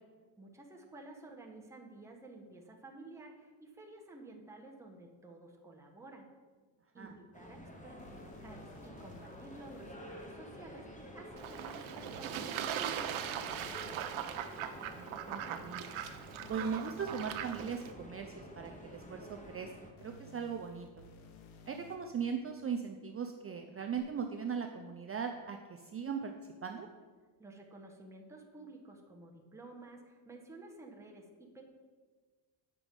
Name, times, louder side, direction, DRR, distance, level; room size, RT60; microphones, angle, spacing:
voice 1, 0.4-6.3 6.9-14.1 27.4-31.7, right 2 dB, 5° right, -1 dB, 1.1 m, -53 dB
sound 1, 7.3-19.9, equal, 15° left, 1.1 m, -50 dB
sound 2, 8.0-10.0 12.0-14.0 16.0-18.0 20.0-22.0 24.0-24.1, left 4 dB, 75° left, 1.1 m, -56 dB
Fowl / Bird / Water, 11.4-17.9, right 9 dB, 75° right, 0.8 m, -40 dB
voice 2, 14.8-15.8 16.5-21.0 21.7-26.3 26.6-26.9, right 6 dB, 30° right, 4 dB, 0.5 m, -39 dB
8.3 x 5.9 x 5.2 m, 1.4 s
cardioid pair, 120°, 48 cm